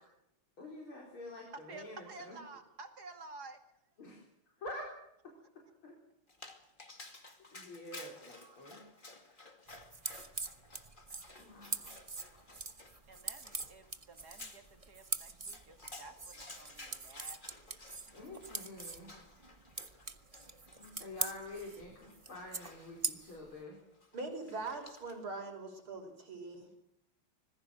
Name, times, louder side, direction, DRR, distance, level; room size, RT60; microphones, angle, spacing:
voice 1, 0.6-2.4 4.0-4.2 4.6-4.9 5.8-5.9 7.5-8.8 11.4-11.9 18.1-19.1 20.8-23.8, left 1 dB, 70° left, -1 dB, 5.3 m, -47 dB
voice 2, 1.7-3.6 4.0-4.1 7.5-7.6 8.3-8.6 11.9-12.5 13.1-17.4, right 3 dB, 45° right, 6 dB, 2.8 m, -52 dB
Dog, 6.3-25.4, left 2 dB, 25° left, 2.4 m, -55 dB
sound 1, 9.7-23.5, right 3 dB, 30° right, 0.7 m, -43 dB
voice 3, 24.1-26.7, right 3 dB, 70° right, 5 dB, 5.9 m, -42 dB
26.0 x 20.5 x 6.5 m, 0.80 s
omnidirectional pair, 2.4 m